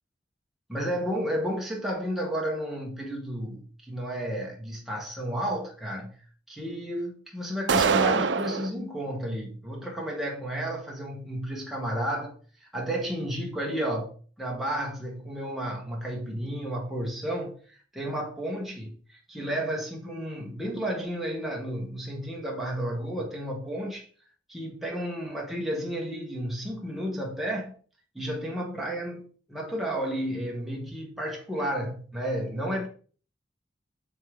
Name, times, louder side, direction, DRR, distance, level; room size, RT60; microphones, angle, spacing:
voice 1, 0.7-6.2 6.5-12.3 12.6-24.1 24.5-27.7 28.1-32.9, equal, ahead, 1.2 m, -32 dB
sound 1, 7.7-8.7, right 5 dB, 70° right, 0.5 m, -23 dB
7.9 x 3.7 x 3.4 m
head